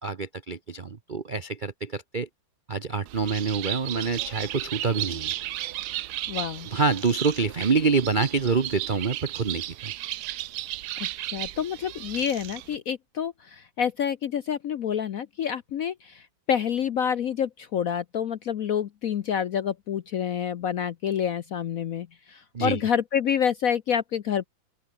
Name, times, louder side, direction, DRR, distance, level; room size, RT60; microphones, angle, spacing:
voice 1, 0.0-2.3 2.7-5.3 6.6-9.9 22.5-22.8, right 4 dB, 50° right, 0.5 m, -26 dB
Bird, 3.1-12.8, right 14 dB, 70° right, 1.0 m, -35 dB
voice 2, 6.3-6.7 11.0-24.5, left 8 dB, 60° left, 0.9 m, -28 dB
open air
omnidirectional pair, 2.2 m